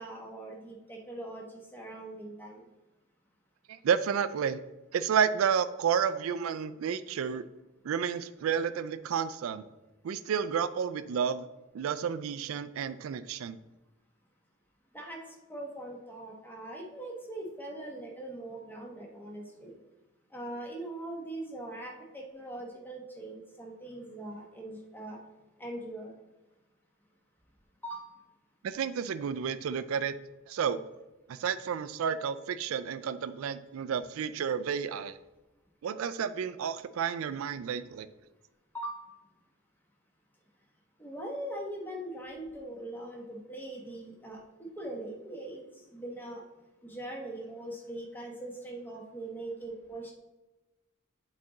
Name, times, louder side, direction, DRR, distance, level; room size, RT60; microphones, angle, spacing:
voice 1, 0.0-2.6 14.9-15.2 15.5-19.7 20.3-25.2 25.6-26.1 27.8-28.1 38.7-39.0 41.0-45.6 45.9-46.4 46.8-50.1, right 1 dB, 10° left, 0 dB, 1.1 m, -41 dB
voice 2, 3.7-4.6 4.9-7.5 7.8-9.7 10.0-11.5 11.7-13.6 28.6-30.2 30.5-30.9 31.3-35.2 35.8-38.1, right 7 dB, 75° right, 13 dB, 0.4 m, -31 dB
8.5 x 4.1 x 3.8 m, 1.1 s
head